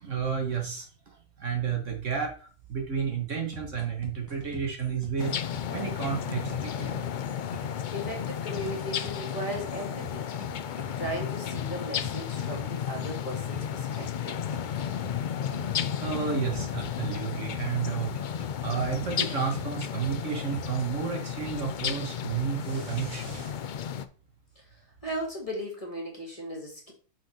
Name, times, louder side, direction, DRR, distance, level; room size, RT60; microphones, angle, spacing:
voice 1, 0.0-0.9 1.4-2.3 2.7-5.4 5.7-7.0 16.0-18.1 18.6-23.5, right 6 dB, 60° right, 2 dB, 1.9 m, -31 dB
sound 1, 3.3-20.9, left 1 dB, 15° right, 1.5 m, -45 dB
sound 2, 5.2-24.0, left 8 dB, 75° left, 0.4 m, -33 dB
voice 2, 7.9-10.3 11.0-14.4 24.6-26.9, equal, 25° left, 0 dB, 2.0 m, -37 dB
6.1 x 5.5 x 4.4 m, 0.38 s
omnidirectional pair, 1.4 m